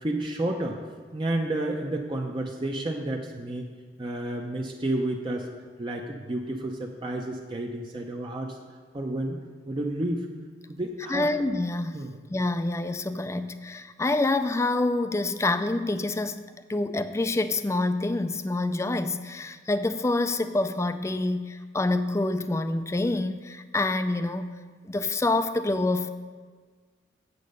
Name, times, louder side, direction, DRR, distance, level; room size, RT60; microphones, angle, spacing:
voice 1, 0.0-0.8 1.1-3.7 4.0-5.5 5.8-8.6 8.9-9.4 9.7-10.3 10.7-11.3 11.9-12.1, right 1 dB, 25° right, 1 dB, 0.6 m, -30 dB
voice 2, 11.1-12.0 12.3-16.4 16.7-24.5 24.8-26.1, left 2 dB, 15° left, 10 dB, 0.4 m, -27 dB
8.2 x 7.6 x 5.3 m, 1.5 s
head